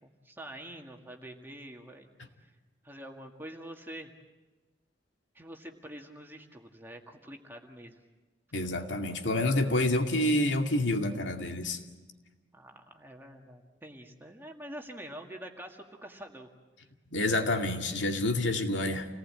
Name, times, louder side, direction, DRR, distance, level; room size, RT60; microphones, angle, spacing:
voice 1, 0.0-2.1 2.4-2.5 2.8-4.1 5.3-8.0 12.5-16.5, right 1 dB, 10° right, 2 dB, 1.9 m, -46 dB
voice 2, 8.5-11.8 17.1-19.1, left 1 dB, 85° left, 4 dB, 2.3 m, -28 dB
28.5 x 19.0 x 8.8 m, 1.2 s
head